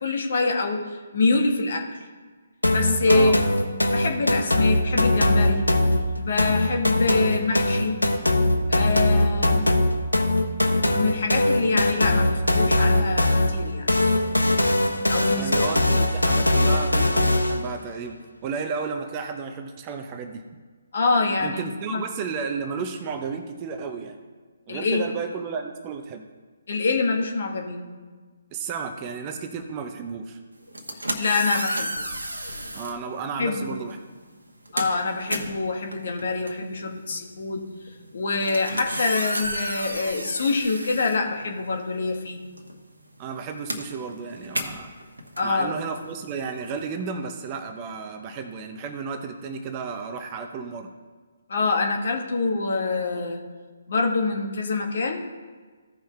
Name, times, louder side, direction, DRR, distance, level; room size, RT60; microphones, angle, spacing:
voice 1, 0.0-0.8 1.1-1.8 2.7-3.4 3.9-5.7 6.2-8.0 8.7-9.7 10.8-13.9 15.1-15.6 20.9-21.6 21.9-22.0 24.7-25.0 26.7-27.8 31.2-31.9 33.4-33.8 34.7-37.6 38.1-42.4 45.4-45.8 51.5-53.4 53.9-55.2, left 3 dB, 55° left, 2 dB, 1.4 m, -25 dB
sound 1, 2.6-17.7, left 1 dB, 85° left, 0.9 m, -21 dB
voice 2, 3.1-3.4 15.4-18.2 18.4-20.4 21.4-24.2 24.7-26.3 28.5-30.4 32.7-34.0 43.2-44.9 45.4-50.9, right 5 dB, 25° right, 6 dB, 0.7 m, -33 dB
sound 2, 30.6-33.0 33.9-34.1 34.4-41.9 42.2-46.8, right 1 dB, 75° right, 1.2 m, -33 dB
15.5 x 5.6 x 3.3 m, 1.4 s
figure-of-eight pair, 135°, 0 cm